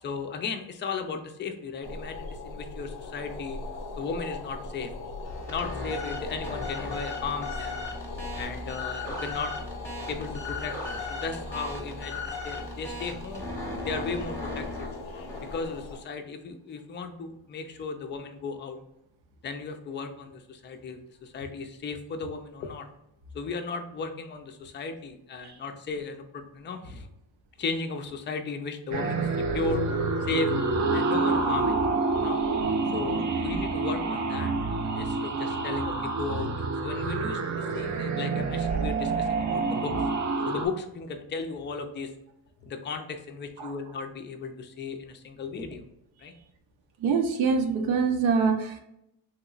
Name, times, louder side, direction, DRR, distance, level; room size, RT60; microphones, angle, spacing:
voice 1, 0.0-3.6 4.0-4.9 5.5-7.8 8.3-9.5 10.1-13.5 13.8-14.9 15.5-18.8 19.4-22.9 23.3-27.1 27.6-29.3 29.5-29.8 30.3-30.5 30.9-32.4 32.9-39.9 40.4-42.1 42.6-45.9 46.2-46.3, left 4 dB, 25° left, 6 dB, 0.4 m, -35 dB
sound 1, 1.8-16.0, left 3 dB, 85° left, 0.6 m, -40 dB
sound 2, 5.2-15.8, left 2 dB, 5° left, 0.8 m, -37 dB
sound 3, 28.9-40.7, right 3 dB, 40° right, 0.5 m, -27 dB
voice 2, 47.0-48.8, right 5 dB, 85° right, 4 dB, 0.6 m, -25 dB
3.1 x 2.9 x 2.4 m, 0.80 s
cardioid pair, 110°, 45 cm